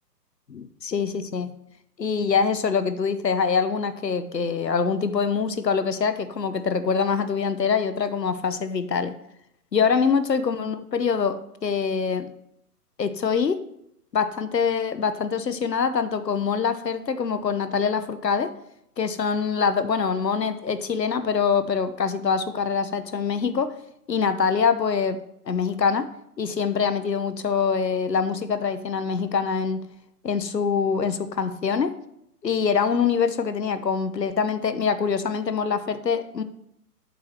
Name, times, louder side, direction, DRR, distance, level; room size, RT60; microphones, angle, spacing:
voice 1, 0.5-1.5 2.0-9.1 9.7-12.3 13.0-13.6 14.1-18.5 19.0-23.7 24.1-25.2 25.5-26.1 26.4-29.8 30.2-31.9 32.4-36.4, left 6 dB, 80° left, 11 dB, 1.0 m, -24 dB
8.1 x 4.9 x 6.0 m, 0.77 s
figure-of-eight pair, 130°, 49 cm